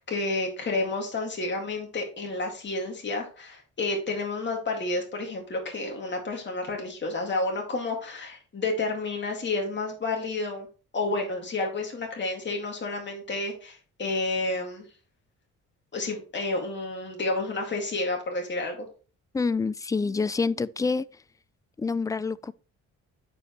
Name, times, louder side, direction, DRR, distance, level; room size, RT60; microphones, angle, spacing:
voice 1, 0.0-10.7 10.9-14.9 15.9-18.9, left 2 dB, 35° left, 2.2 m, -30 dB
voice 2, 19.3-21.2 21.8-22.5, left 4 dB, 10° left, 0.3 m, -27 dB
9.6 x 5.0 x 3.1 m
cardioid pair, 90°, 30 cm